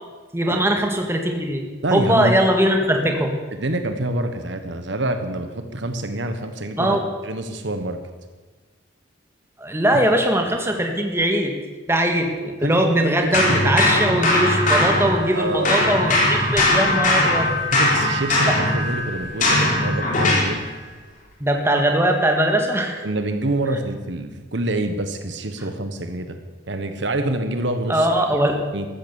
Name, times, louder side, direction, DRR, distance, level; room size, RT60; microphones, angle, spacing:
voice 1, 0.3-1.6 1.9-3.3 6.8-7.0 9.6-11.5 11.9-17.5 18.5-18.6 21.4-23.0 27.9-28.6, right 1 dB, 15° right, 3 dB, 1.8 m, -20 dB
voice 2, 1.8-2.3 3.5-7.0 7.2-8.0 12.6-12.8 13.2-13.6 15.3-15.9 17.7-20.6 23.0-26.4 26.7-28.9, right 1 dB, 65° right, 8 dB, 1.2 m, -26 dB
sound 1, 13.3-15.4 15.6-20.6, left 1 dB, 40° left, 3.9 m, -20 dB
14.5 x 13.0 x 7.0 m, 1.3 s
head